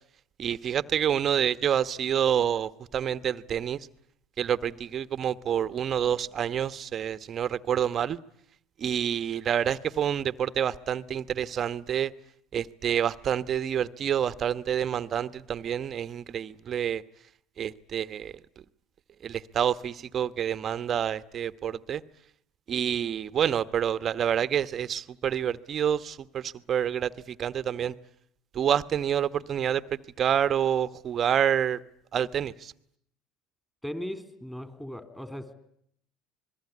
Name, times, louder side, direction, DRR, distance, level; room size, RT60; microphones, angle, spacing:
voice 1, 0.4-3.8 4.4-8.2 8.8-12.1 12.5-17.0 17.6-18.3 19.2-22.0 22.7-27.1 27.4-27.9 28.5-29.8 30.2-31.8 32.1-32.7, right 9 dB, 40° right, 13 dB, 1.1 m, -28 dB
voice 2, 33.8-35.5, equal, 5° left, 10 dB, 3.8 m, -37 dB
27.0 x 21.0 x 9.6 m, 0.71 s
hypercardioid pair, 85°, 0 cm